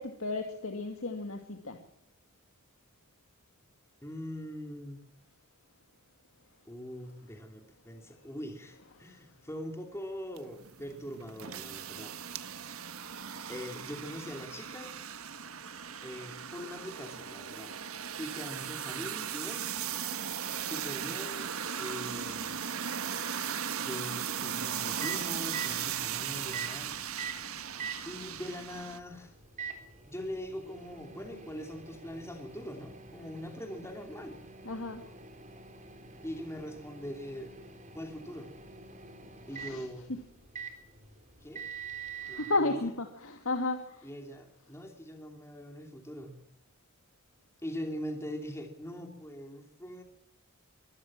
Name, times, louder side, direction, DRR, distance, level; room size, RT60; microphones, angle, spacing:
voice 1, 0.0-1.8 34.7-35.0 39.6-39.9 42.2-44.1, left 2 dB, 65° left, 5 dB, 2.3 m, -33 dB
voice 2, 4.0-5.0 6.7-12.2 13.5-14.9 16.0-17.8 18.2-19.7 20.6-21.5 21.8-22.6 23.8-27.0 28.1-29.3 30.1-34.4 36.2-37.5 37.9-38.5 39.5-40.1 41.4-41.7 42.3-42.7 44.0-46.4 47.6-50.0, equal, 15° left, 4 dB, 2.8 m, -42 dB
sound 1, 10.4-29.0, right 8 dB, 80° right, 1.6 m, -37 dB
Microwave oven, 24.6-42.6, right 5 dB, 35° right, 3.7 m, -45 dB
24.5 x 16.5 x 7.4 m, 0.76 s
head